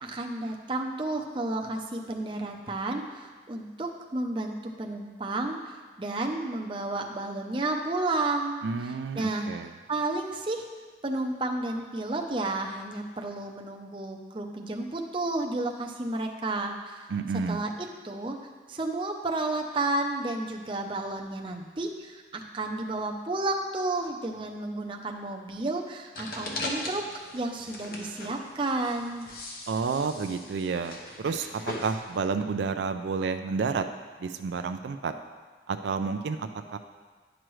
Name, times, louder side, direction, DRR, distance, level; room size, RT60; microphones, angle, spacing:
voice 1, 0.0-5.6 6.0-9.5 9.9-10.6 11.0-17.0 17.5-18.4 18.7-29.3, right 2 dB, 30° right, 2 dB, 0.6 m, -32 dB
voice 2, 8.6-9.7 17.1-17.6 29.7-33.9 34.2-35.1 35.7-36.8, right 5 dB, 80° right, 8 dB, 0.4 m, -30 dB
sound 1, 26.1-32.3, left 2 dB, 55° left, 1.0 m, -39 dB
10.0 x 6.2 x 3.1 m, 1.4 s
head